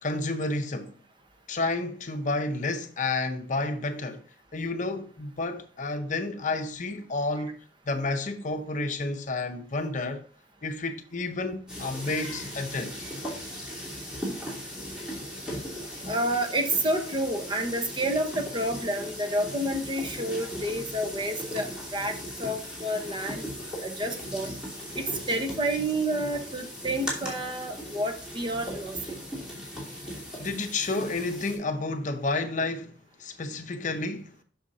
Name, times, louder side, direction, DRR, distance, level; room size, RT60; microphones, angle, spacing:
voice 1, 0.0-1.0 1.5-4.2 4.5-7.6 7.9-10.2 10.6-13.0 30.4-34.3, left 3 dB, 45° left, 0.7 m, -30 dB
sound 1, 11.7-31.6, equal, 5° right, 2.8 m, -38 dB
voice 2, 16.1-23.4 23.8-24.6 25.0-29.2, right 1 dB, 30° right, 1.0 m, -29 dB
7.9 x 6.3 x 2.7 m
head